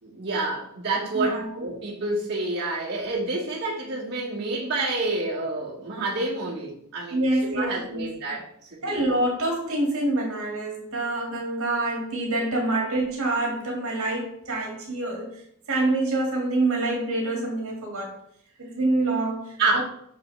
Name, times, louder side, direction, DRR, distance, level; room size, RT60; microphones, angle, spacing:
voice 1, 0.0-8.5 8.9-9.0 19.6-19.8, right 2 dB, 50° right, -7 dB, 1.9 m, -28 dB
voice 2, 1.1-1.7 7.1-8.1 8.8-15.4 15.7-18.1 18.6-19.8, right 2 dB, 65° right, -1 dB, 1.9 m, -26 dB
6.3 x 6.1 x 3.2 m, 0.71 s
head